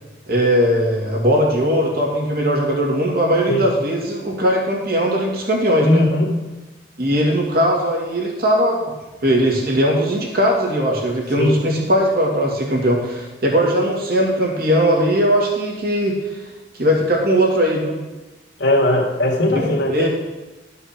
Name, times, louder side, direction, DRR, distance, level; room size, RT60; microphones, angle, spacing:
voice 1, 0.3-6.0 7.0-8.9 9.2-16.2 16.7-18.0 19.9-20.1, equal, 55° right, -1 dB, 2.4 m, -19 dB
voice 2, 5.8-6.3 11.4-11.6 18.6-20.1, left 1 dB, 70° left, 0 dB, 1.8 m, -18 dB
11.5 x 5.6 x 6.0 m, 1.1 s
head